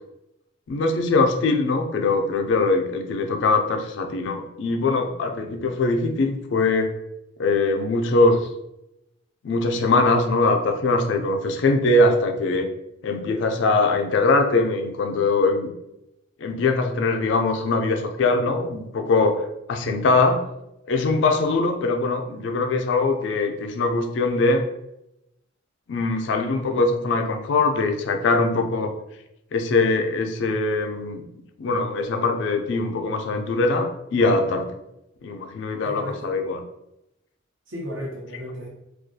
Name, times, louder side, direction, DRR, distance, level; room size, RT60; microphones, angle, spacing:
voice 1, 0.7-6.9 7.4-8.4 9.4-12.7 13.0-15.7 16.4-19.4 19.7-20.4 20.9-24.6 25.9-28.9 29.5-31.2 31.6-34.7 35.2-36.6, left 3 dB, 65° left, 4 dB, 0.3 m, -22 dB
voice 2, 35.8-36.3 37.7-38.7, equal, 75° right, -2 dB, 0.8 m, -34 dB
2.3 x 2.2 x 2.6 m, 0.87 s
head